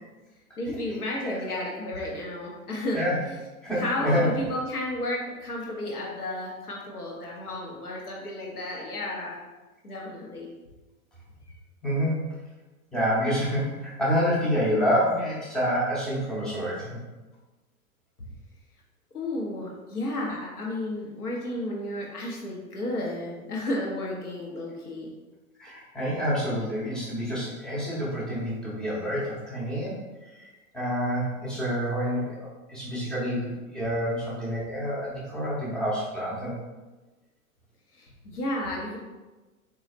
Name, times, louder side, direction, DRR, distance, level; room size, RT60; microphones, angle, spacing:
voice 1, 0.6-3.0 3.3-3.4 3.8-9.4 9.8-10.5 19.1-25.1 37.9-39.0, left 1 dB, 80° left, -3 dB, 0.9 m, -32 dB
voice 2, 3.6-4.3 11.8-12.3 12.9-17.0 25.6-29.9 30.2-30.5 30.7-36.5, equal, ahead, -8 dB, 0.5 m, -28 dB
3.9 x 2.4 x 3.0 m, 1.2 s
figure-of-eight pair, 95°, 44 cm